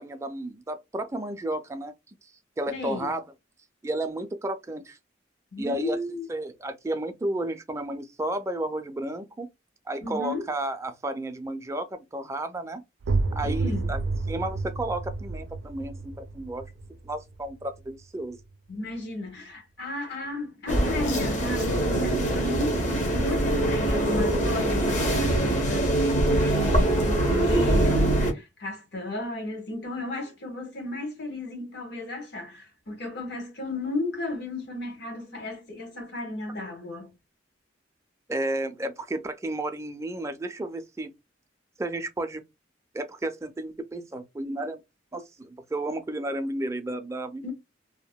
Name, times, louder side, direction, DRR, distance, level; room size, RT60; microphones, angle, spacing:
voice 1, 0.0-2.1 2.6-3.2 3.8-5.0 5.6-6.0 6.3-9.5 9.9-12.8 13.3-14.0 14.3-16.7 17.0-18.4 38.3-41.1 41.8-42.4 42.9-44.8 45.1-47.5, right 1 dB, 15° right, 0.3 m, -32 dB
voice 2, 2.7-3.1 5.5-6.3 10.0-10.5 13.4-13.9 18.7-37.1 47.4-47.5, left 2 dB, 60° left, 1.1 m, -34 dB
sound 1, 13.0-18.6, right 3 dB, 85° right, 0.4 m, -31 dB
sound 2, 20.7-28.3, right 1 dB, 40° left, 0.8 m, -23 dB
2.7 x 2.1 x 2.2 m
head